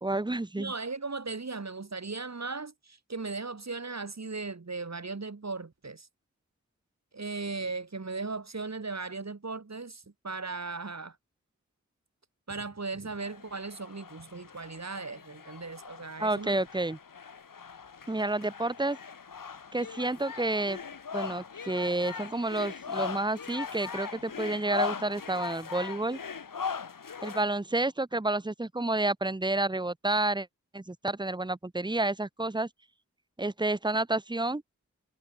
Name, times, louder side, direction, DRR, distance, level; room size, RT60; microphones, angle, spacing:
voice 1, 0.0-0.7 16.2-17.0 18.1-19.0 19.7-20.8 21.1-26.2 27.2-30.5 30.7-32.7 33.4-34.6, right 2 dB, 15° right, 1.0 m, -30 dB
voice 2, 0.5-6.1 7.1-11.2 12.5-16.7, right 4 dB, 55° right, 4.5 m, -37 dB
sound 1, 13.2-27.4, left 6 dB, 90° left, 3.1 m, -40 dB
cardioid pair, 45°, 32 cm